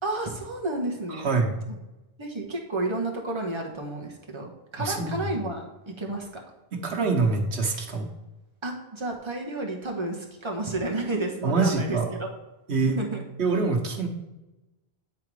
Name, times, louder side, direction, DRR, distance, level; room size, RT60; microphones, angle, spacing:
voice 1, 0.0-1.3 1.7-1.8 2.2-6.3 8.6-12.3 12.8-13.2, right 2 dB, 25° right, 0 dB, 1.2 m, -31 dB
voice 2, 4.8-5.1 6.7-8.1 11.4-12.1 12.7-13.0 13.4-14.1, right 4 dB, 90° right, 2 dB, 1.3 m, -24 dB
9.3 x 3.8 x 4.8 m, 1.0 s
omnidirectional pair, 1.1 m